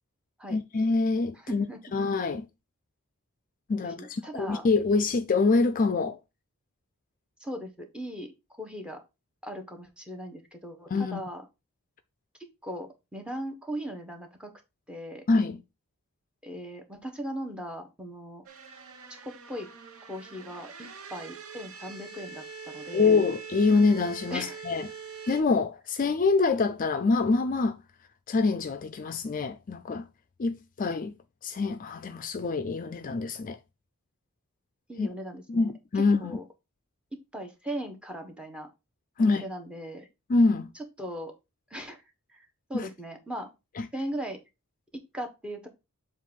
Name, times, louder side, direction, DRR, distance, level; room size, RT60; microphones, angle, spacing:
voice 1, 0.5-1.7 1.9-2.5 3.7-6.2 10.9-11.2 15.3-15.6 22.9-24.9 25.3-27.8 28.3-30.1 30.4-31.1 31.4-33.6 35.0-35.1 35.5-36.4 39.2-39.5 40.3-40.7 42.7-42.9 43.8-43.9, left 3 dB, 40° left, 0.4 m, -25 dB
voice 2, 1.5-1.8 3.8-4.7 7.4-8.3 8.6-9.0 9.4-11.4 12.6-14.5 14.9-15.2 16.4-18.4 19.1-19.7 20.1-23.2 24.3-24.6 34.9-36.4 37.1-38.7 39.2-40.1 41.0-41.3 41.7-42.0 42.3-43.5 43.9-44.4 44.9-45.7, equal, 5° right, 1.1 m, -38 dB
sound 1, 18.5-25.4, right 5 dB, 75° right, 0.9 m, -44 dB
7.4 x 2.5 x 5.3 m
head